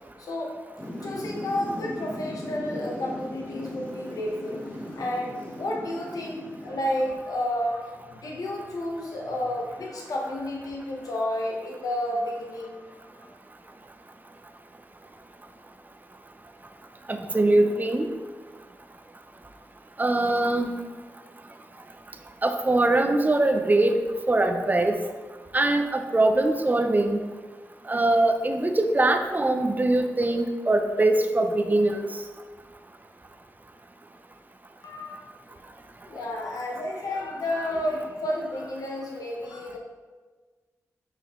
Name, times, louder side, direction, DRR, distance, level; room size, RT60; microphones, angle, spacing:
voice 1, 0.2-0.5 1.0-13.4 34.8-35.3 36.1-39.8, left 1 dB, 70° left, -1 dB, 1.2 m, -31 dB
Thunder / Rain, 0.8-7.2, left 1 dB, 20° left, 1.4 m, -38 dB
voice 2, 17.1-18.1 20.0-20.8 22.4-24.0 24.3-25.0 25.5-27.2 27.9-32.1, right 2 dB, 30° right, 6 dB, 0.7 m, -22 dB
5.7 x 5.2 x 3.2 m, 1.4 s
cardioid pair, 45°, 6 cm